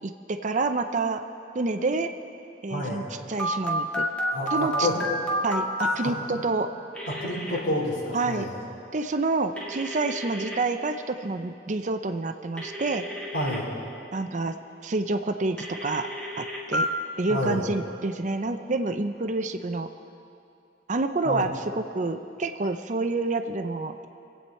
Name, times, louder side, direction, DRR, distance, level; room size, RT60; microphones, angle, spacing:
voice 1, 0.0-1.2 1.5-2.1 2.6-4.0 4.5-4.9 5.4-6.7 8.1-8.5 8.9-13.0 14.1-14.5 14.8-16.1 16.4-16.9 17.2-19.9 20.9-24.1, right 3 dB, 45° right, 8 dB, 0.6 m, -28 dB
voice 2, 2.7-3.0 4.3-4.9 5.8-6.1 7.1-8.5 13.3-13.7 17.3-17.6 21.2-21.5, left 1 dB, 70° left, -6 dB, 4.2 m, -29 dB
Telephone, 3.4-5.9 7.0-7.6 9.6-10.6 12.6-13.6 15.6-16.9, equal, 5° left, 1.7 m, -30 dB
25.5 x 8.6 x 4.3 m, 2.7 s
head